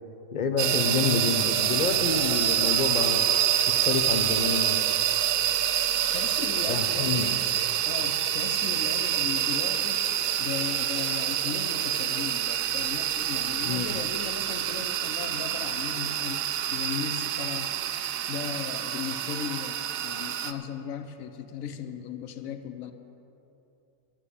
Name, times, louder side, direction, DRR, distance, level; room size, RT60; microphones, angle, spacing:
voice 1, 0.3-3.3 3.7-4.8 6.7-7.3 13.6-13.9, left 5 dB, 40° left, 6 dB, 0.7 m, -28 dB
sound 1, 0.6-20.5, right 10 dB, 85° right, 1.0 m, -27 dB
voice 2, 6.1-7.4 7.8-10.1 10.4-17.7 18.3-22.9, left 7 dB, 80° left, 8 dB, 1.2 m, -37 dB
11.5 x 7.3 x 9.8 m, 2.9 s
omnidirectional pair, 1.4 m